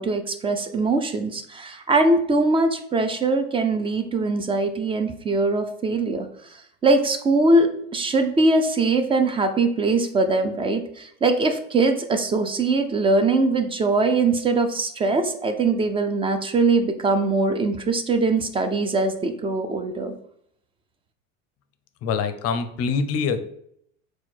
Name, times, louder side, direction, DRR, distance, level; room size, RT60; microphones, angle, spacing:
voice 1, 0.0-6.3 6.8-20.1, right 3 dB, 15° right, 7 dB, 0.3 m, -22 dB
voice 2, 22.0-23.4, left 5 dB, 40° left, 9 dB, 0.5 m, -24 dB
4.4 x 2.2 x 4.2 m, 0.69 s
hypercardioid pair, 95°, 40 cm